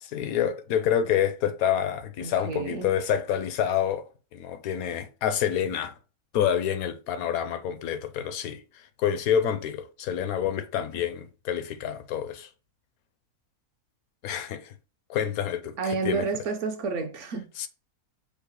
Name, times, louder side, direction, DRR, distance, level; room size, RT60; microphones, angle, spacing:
voice 1, 0.0-5.9 6.3-8.6 9.0-12.5 14.2-14.7 15.1-16.3 17.6-17.7, left 9 dB, 75° left, 1.0 m, -28 dB
voice 2, 2.2-2.9 15.8-17.5, right 4 dB, 60° right, 0.9 m, -30 dB
5.5 x 2.1 x 4.5 m
omnidirectional pair, 1.6 m